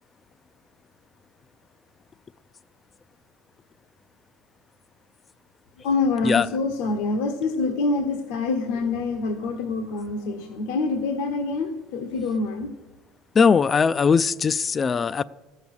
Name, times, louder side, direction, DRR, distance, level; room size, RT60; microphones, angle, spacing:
voice 1, 5.8-12.7, left 3 dB, 85° left, 5 dB, 1.1 m, -26 dB
voice 2, 13.4-15.2, left 5 dB, 30° left, 17 dB, 0.4 m, -20 dB
14.5 x 7.1 x 8.0 m, 1.1 s
supercardioid pair, 110°, 0 cm